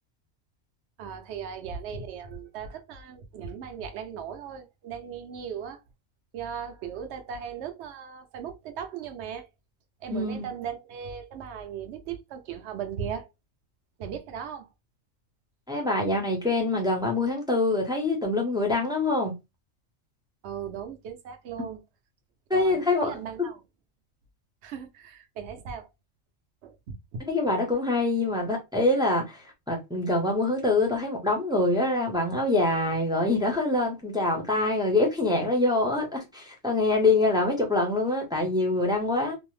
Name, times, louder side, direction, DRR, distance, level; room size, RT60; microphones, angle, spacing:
voice 1, 1.0-5.8 6.3-9.5 10.0-13.3 14.0-14.7 20.4-21.8 22.5-23.6 24.6-25.9 26.6-27.2, right 7 dB, 65° right, 0.8 m, -37 dB
voice 2, 10.1-10.4 15.7-19.4 22.5-23.2 27.3-39.4, left 2 dB, 5° right, 0.4 m, -25 dB
2.6 x 2.0 x 3.1 m
omnidirectional pair, 1.4 m